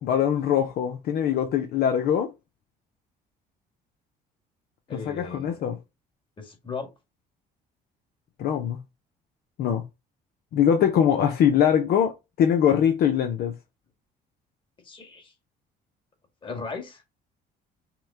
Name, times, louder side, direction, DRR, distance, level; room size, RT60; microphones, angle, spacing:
voice 1, 0.0-2.3 4.9-5.8 8.4-8.8 9.6-9.8 10.5-13.5, left 9 dB, 65° left, 0.7 m, -22 dB
voice 2, 4.9-5.6 6.4-6.9 14.8-15.3 16.4-17.0, left 4 dB, 30° left, 1.8 m, -37 dB
5.9 x 2.2 x 3.6 m
cardioid pair, 110°, 17 cm